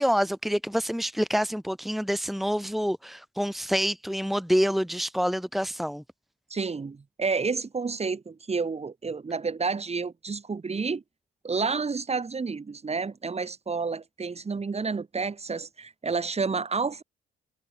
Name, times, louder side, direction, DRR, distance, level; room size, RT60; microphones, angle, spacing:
voice 1, 0.0-6.0, equal, ahead, 2.5 m, -27 dB
voice 2, 6.5-11.0 11.4-17.0, right 4 dB, 30° right, 6.5 m, -30 dB
cardioid pair, 90°, 20 cm